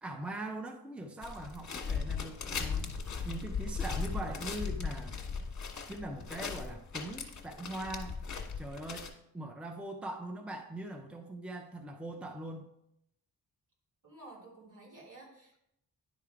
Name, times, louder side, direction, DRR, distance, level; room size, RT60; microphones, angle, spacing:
voice 1, 0.0-3.0 3.2-5.2 5.9-8.2 8.6-12.7, right 1 dB, 5° right, 4 dB, 0.6 m, -41 dB
sound 1, 1.2-9.1, left 5 dB, 50° left, 1.3 m, -38 dB
voice 2, 14.0-15.7, right 2 dB, 60° right, -3 dB, 2.9 m, -52 dB
10.5 x 3.6 x 4.7 m, 0.77 s
cardioid pair, 95°, 36 cm